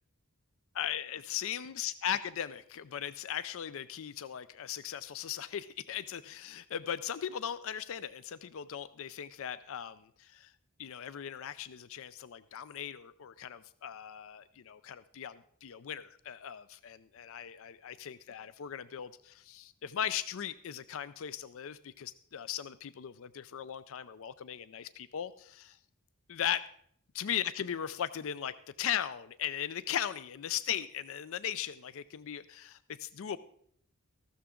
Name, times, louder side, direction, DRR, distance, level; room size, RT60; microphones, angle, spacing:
voice 1, 0.7-10.5 10.8-25.5 26.3-26.6 27.1-33.4, left 9 dB, 65° left, 15 dB, 0.4 m, -38 dB
14.5 x 12.5 x 3.7 m, 0.66 s
head